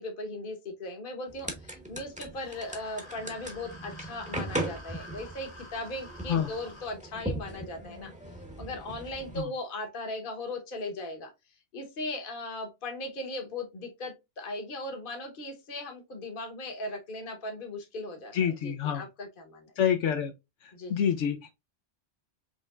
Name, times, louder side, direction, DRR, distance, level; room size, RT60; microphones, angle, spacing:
voice 1, 0.0-8.1 8.6-11.3 11.7-18.3 18.6-19.7 20.7-20.9, left 2 dB, 45° left, 1.1 m, -38 dB
sound 1, 1.3-9.4, right 1 dB, 5° right, 0.8 m, -39 dB
sound 2, 2.3-6.9, left 1 dB, 25° left, 0.9 m, -49 dB
voice 2, 18.3-19.0 19.8-20.3 20.6-21.5, left 8 dB, 75° left, 0.9 m, -27 dB
5.3 x 3.2 x 2.3 m
omnidirectional pair, 1.3 m